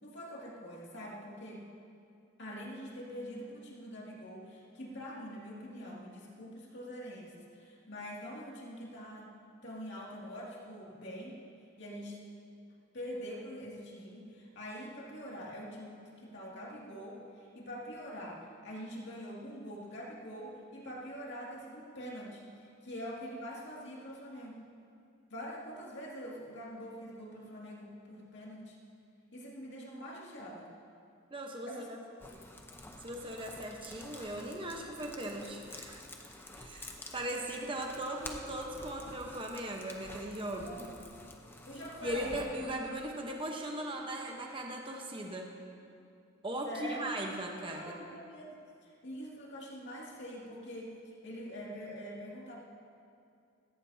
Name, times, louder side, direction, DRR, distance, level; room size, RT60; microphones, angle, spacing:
voice 1, 0.0-1.6 2.4-9.3 9.6-11.4 11.8-12.2 12.9-24.6 25.3-28.8 29.3-30.7 31.7-31.9 32.3-32.4 40.6-41.0 41.7-42.4 46.7-47.3 47.7-48.5 48.8-50.9 51.2-52.6, equal, 55° left, -4 dB, 2.4 m, -44 dB
voice 2, 31.3-32.0 33.0-36.0 36.5-40.8 42.0-45.5 46.4-48.0, right 1 dB, 25° right, 1 dB, 1.0 m, -38 dB
sound 1, 32.2-42.4, left 2 dB, 10° left, 0.8 m, -50 dB
17.0 x 17.0 x 2.8 m, 2.5 s
head